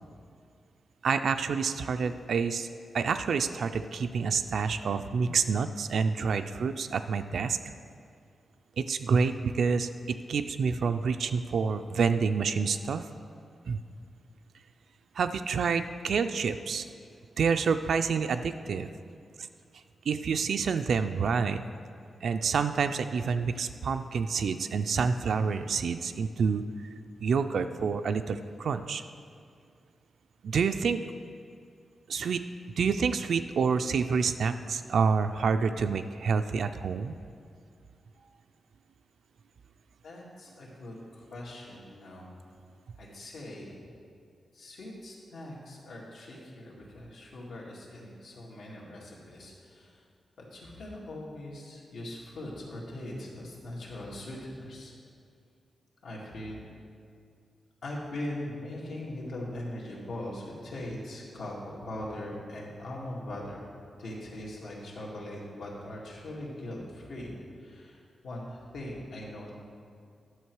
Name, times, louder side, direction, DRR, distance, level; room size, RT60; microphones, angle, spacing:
voice 1, 1.0-2.7 2.9-7.6 8.8-13.1 13.7-13.8 15.2-16.9 17.4-18.9 20.1-21.6 22.2-26.6 27.2-29.0 30.4-31.0 32.1-32.4 32.8-37.2, right 5 dB, 65° right, 8 dB, 0.3 m, -28 dB
voice 2, 40.0-42.3 43.0-43.8 44.5-50.0 50.5-54.9 56.0-56.7 57.8-63.7 64.0-67.3 67.6-69.5, left 1 dB, 90° left, -4 dB, 2.0 m, -41 dB
11.0 x 6.5 x 4.6 m, 2.3 s
wide cardioid pair, 175°, 0 cm